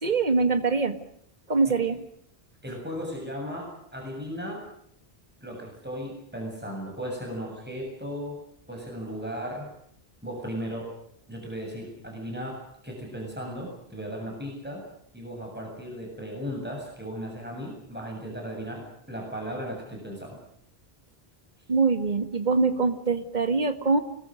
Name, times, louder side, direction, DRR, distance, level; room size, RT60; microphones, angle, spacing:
voice 1, 0.0-1.0 1.5-2.1 21.7-24.0, right 4 dB, 45° right, 8 dB, 2.0 m, -23 dB
voice 2, 2.6-4.7 5.4-8.4 8.7-9.7 10.2-10.9 11.3-12.6 12.8-14.8 15.1-20.4, equal, 10° right, 0 dB, 7.5 m, -36 dB
30.0 x 20.5 x 6.5 m, 0.69 s
omnidirectional pair, 1.0 m